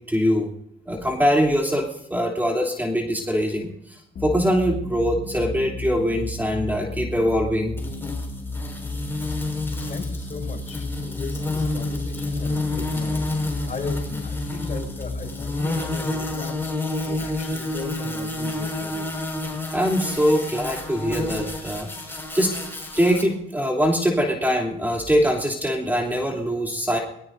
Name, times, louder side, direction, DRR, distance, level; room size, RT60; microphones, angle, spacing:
voice 1, 0.1-0.5 0.9-7.8 19.7-22.5 23.0-27.0, equal, 10° right, 0 dB, 3.2 m, -23 dB
sound 1, 4.1-17.4, left 2 dB, 55° left, 2.3 m, -33 dB
sound 2, 7.8-23.2, left 2 dB, 10° left, 5.5 m, -30 dB
voice 2, 9.8-13.3 13.6-16.6 17.0-19.1, left 4 dB, 40° left, 1 dB, 6.3 m, -37 dB
22.5 x 19.5 x 2.7 m, 0.79 s
cardioid pair, 90°, 20 cm